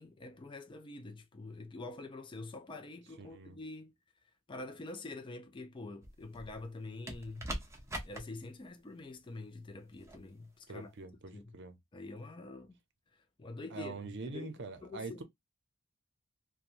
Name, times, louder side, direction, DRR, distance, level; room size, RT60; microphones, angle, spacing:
voice 1, 0.0-3.9 4.5-7.5 8.0-10.9 11.3-11.6 11.9-12.8 13.1-15.2, left 2 dB, 25° left, 0.4 m, -46 dB
voice 2, 3.2-3.6 10.7-11.8 13.7-15.2, right 3 dB, 55° right, 0.6 m, -44 dB
sound 1, 6.0-6.6 7.1-8.2 10.0-10.2, right 1 dB, 15° right, 0.7 m, -42 dB
3.0 x 2.2 x 2.5 m
head